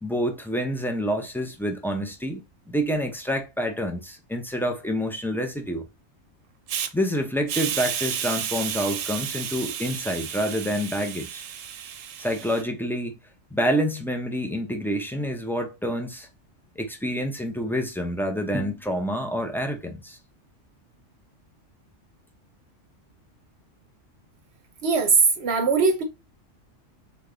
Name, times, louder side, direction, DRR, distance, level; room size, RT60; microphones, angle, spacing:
voice 1, 0.0-2.4 2.7-5.9 6.9-11.4 12.2-13.1 13.5-16.3 16.8-20.2, equal, 5° left, 0.4 m, -27 dB
Hiss, 6.7-6.9 7.5-12.6, right 9 dB, 85° right, 1.0 m, -32 dB
voice 2, 24.8-26.0, right 4 dB, 60° right, 0.9 m, -20 dB
3.7 x 3.4 x 3.8 m
omnidirectional pair, 1.3 m